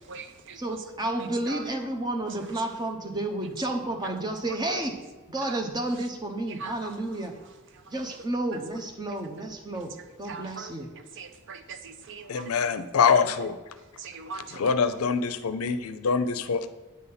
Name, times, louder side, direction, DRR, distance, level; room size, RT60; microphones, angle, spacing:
voice 1, 0.0-0.9 1.2-1.8 2.3-2.8 3.4-3.7 4.0-4.2 4.5-4.6 5.4-5.6 5.9-6.1 6.5-8.6 9.1-9.3 9.7-12.7 13.8-14.8, right 5 dB, 60° right, 9 dB, 0.6 m, -43 dB
voice 2, 0.6-4.9 5.3-7.3 7.9-9.9 10.2-10.8, right 1 dB, 20° right, 4 dB, 0.7 m, -31 dB
voice 3, 12.3-13.6 14.6-16.7, left 6 dB, 80° left, 11 dB, 0.5 m, -24 dB
8.5 x 4.0 x 5.7 m, 1.2 s
head